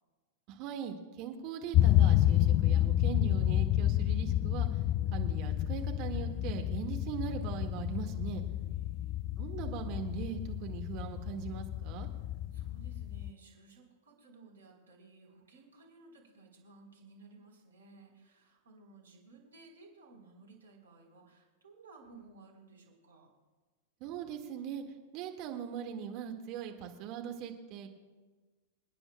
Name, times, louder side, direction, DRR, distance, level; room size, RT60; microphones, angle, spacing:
voice 1, 0.5-4.7 5.1-8.4 9.4-12.1 24.0-24.8 25.1-27.9, right 8 dB, 45° right, 4 dB, 1.7 m, -40 dB
sound 1, 1.7-13.3, left 13 dB, 45° left, 0.3 m, -30 dB
voice 2, 8.6-9.2 12.2-23.3, right 3 dB, 80° right, 0 dB, 3.8 m, -57 dB
28.0 x 9.7 x 2.2 m, 1.3 s
figure-of-eight pair, 100°, 0 cm